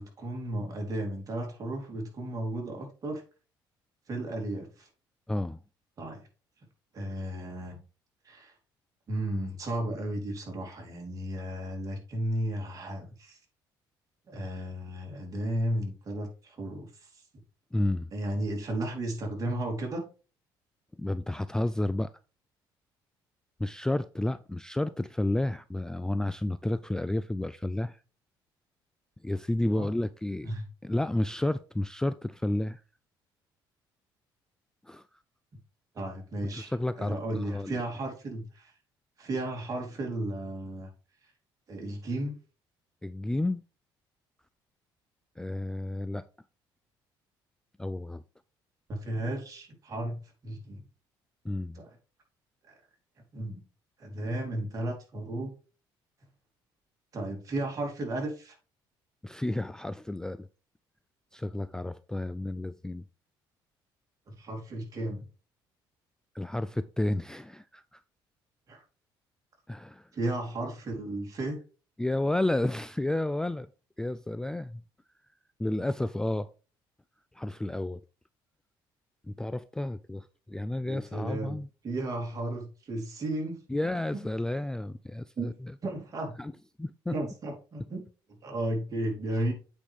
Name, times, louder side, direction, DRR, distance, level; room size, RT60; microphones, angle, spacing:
voice 1, 0.0-3.2 4.1-4.9 6.0-6.2 6.9-7.8 8.2-8.5 9.1-13.4 14.3-17.2 18.1-20.0 29.7-29.9 30.4-30.7 35.9-38.7 39.2-40.9 41.7-42.3 48.9-50.8 51.7-51.9 52.7-52.8 53.3-53.6 54.0-55.5 57.1-58.5 64.3-65.2 68.7-68.8 70.1-71.6 80.8-83.6 84.1-84.3 85.4-85.6 85.8-86.4 87.1-88.0 88.4-89.5, right 1 dB, 40° right, 3.4 m, -34 dB
voice 2, 5.3-5.6 17.7-18.1 21.0-22.1 23.6-28.0 29.2-30.5 30.8-32.8 34.9-35.0 36.5-37.7 43.0-43.6 45.4-46.2 47.8-48.2 51.4-51.8 59.2-60.5 61.3-63.0 66.3-68.0 69.7-70.1 72.0-73.7 74.0-74.8 75.6-76.5 77.3-78.0 79.3-81.7 83.7-85.5 86.4-86.5 86.8-87.1, left 1 dB, 5° left, 0.3 m, -31 dB
8.5 x 5.0 x 3.5 m
cardioid pair, 100°, 9 cm